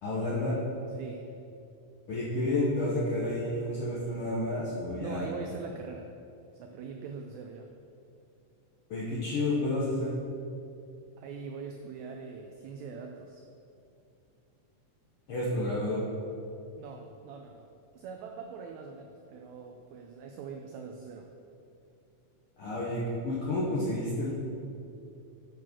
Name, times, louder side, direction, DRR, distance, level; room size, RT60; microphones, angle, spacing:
voice 1, 0.0-0.6 2.1-5.3 8.9-10.2 15.3-16.0 22.6-24.3, left 1 dB, 70° left, -7 dB, 1.3 m, -30 dB
voice 2, 1.0-1.3 5.0-6.1 6.5-7.7 11.2-13.4 16.8-17.7 17.9-21.3, right 5 dB, 90° right, 3 dB, 1.6 m, -42 dB
8.3 x 4.6 x 6.1 m, 2.6 s
omnidirectional pair, 3.9 m